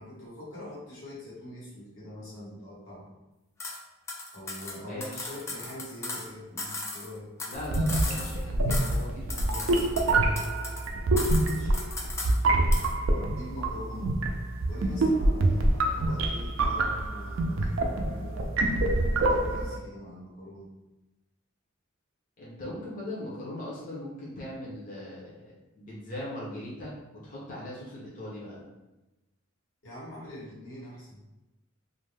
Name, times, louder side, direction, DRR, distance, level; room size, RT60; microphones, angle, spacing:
voice 1, 0.0-3.1 4.3-7.3 11.3-11.8 13.1-14.2 14.6-18.7 19.2-20.7 29.8-31.2, left 1 dB, 90° left, -7 dB, 1.2 m, -43 dB
sound 1, 3.6-3.8 4.1-6.3 6.6-8.4 8.7-9.0 9.3-10.9 11.2-12.4 12.7-12.9, left 2 dB, 15° left, 0.3 m, -37 dB
voice 2, 4.8-5.3 7.5-10.3 22.4-27.0 27.2-28.7, left 1 dB, 45° left, -6 dB, 0.6 m, -40 dB
sound 2, 7.6-19.8, right 2 dB, 70° right, 0.4 m, -26 dB
2.5 x 2.1 x 3.2 m, 1.0 s
head